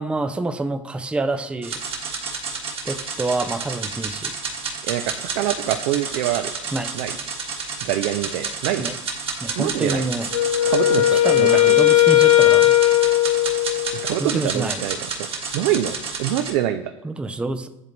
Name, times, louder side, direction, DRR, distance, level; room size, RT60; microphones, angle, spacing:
voice 1, 0.0-1.8 2.9-4.3 6.7-6.9 8.8-9.0 9.4-10.3 11.1-12.7 14.2-14.8 17.0-17.7, right 2 dB, 5° right, 10 dB, 0.4 m, -27 dB
sound 1, 1.6-16.5, right 4 dB, 35° right, 1.4 m, -31 dB
voice 2, 4.8-6.5 6.9-7.2 7.8-8.9 9.6-10.1 10.7-11.8 14.0-16.9, right 12 dB, 60° right, 8 dB, 0.5 m, -25 dB
Wind instrument woodwind instrument, 10.3-14.2, left 13 dB, 85° left, 0.4 m, -17 dB
10.5 x 3.8 x 3.1 m, 0.95 s
hypercardioid pair, 90°, 17 cm